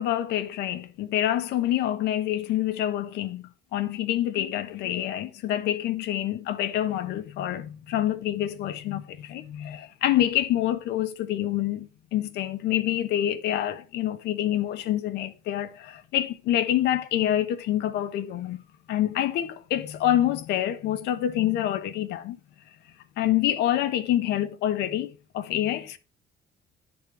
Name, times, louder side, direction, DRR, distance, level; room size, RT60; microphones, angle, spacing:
voice 1, 0.0-18.6 18.9-22.4 23.2-26.0, left 12 dB, 80° left, 1.3 m, -27 dB
10.5 x 4.2 x 6.2 m
cardioid pair, 110°, 17 cm